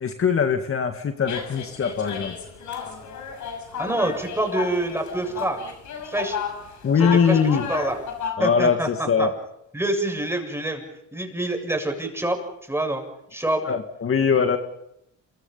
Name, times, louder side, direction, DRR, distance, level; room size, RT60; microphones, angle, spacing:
voice 1, 0.0-2.3 6.8-7.7 8.4-9.3 13.7-14.6, left 6 dB, 45° left, 5 dB, 2.1 m, -21 dB
sound 1, 1.3-8.3, left 7 dB, 75° left, 6.3 m, -33 dB
voice 2, 3.8-5.6 6.1-6.4 7.0-7.4 7.7-8.0 8.4-9.3 9.7-10.8 11.1-13.0 13.3-13.6, right 1 dB, 10° right, 3 dB, 7.4 m, -26 dB
28.0 x 24.5 x 5.7 m, 0.80 s
cardioid pair, 90°, 30 cm